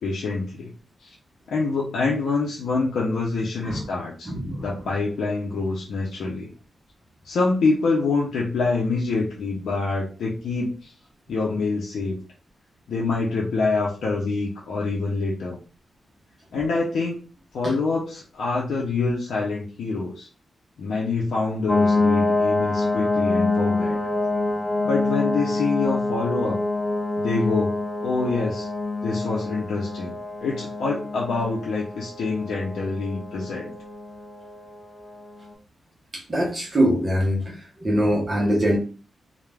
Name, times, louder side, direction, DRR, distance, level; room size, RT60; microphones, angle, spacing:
voice 1, 0.0-0.7 1.0-1.1 1.5-4.3 4.6-6.5 7.2-10.9 11.3-12.2 12.9-15.6 16.5-17.2 17.5-20.3 20.8-24.0 24.8-26.6 27.2-27.8 28.0-28.7 29.0-30.2 30.4-33.7, left 3 dB, 80° left, -4 dB, 0.5 m, -26 dB
voice 2, 4.2-4.9 17.6-17.7 36.1-38.8, equal, 25° right, -3 dB, 0.7 m, -23 dB
sound 1, 21.7-35.3, left 2 dB, 20° left, 0.5 m, -26 dB
2.3 x 2.1 x 3.2 m, 0.36 s
wide cardioid pair, 180°, 0 cm